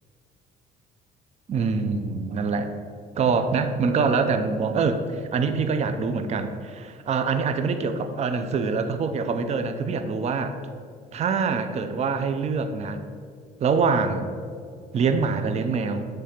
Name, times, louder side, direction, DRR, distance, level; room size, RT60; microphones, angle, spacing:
voice 1, 1.5-2.7 3.2-10.5 11.1-13.0 13.6-14.3 14.9-16.1, right 5 dB, 40° right, 8 dB, 0.6 m, -25 dB
8.3 x 3.4 x 5.8 m, 2.1 s
cardioid pair, 110°, 17 cm